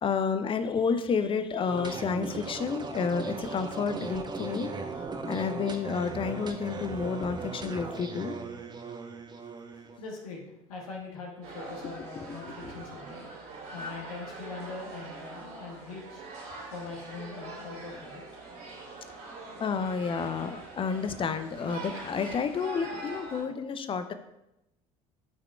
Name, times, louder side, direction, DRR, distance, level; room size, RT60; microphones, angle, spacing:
voice 1, 0.0-4.7 5.3-8.4 12.4-12.5 19.6-24.1, left 5 dB, 30° left, 10 dB, 0.6 m, -30 dB
sound 1, 1.7-10.0, right 4 dB, 25° right, 0.8 m, -38 dB
voice 2, 10.0-10.4 10.7-13.3 13.7-16.2 16.7-18.2, left 4 dB, 70° left, -1 dB, 1.5 m, -42 dB
sound 2, 11.4-23.4, right 2 dB, 55° right, 2.2 m, -43 dB
11.5 x 5.8 x 2.3 m, 0.90 s
figure-of-eight pair, 60°, 19 cm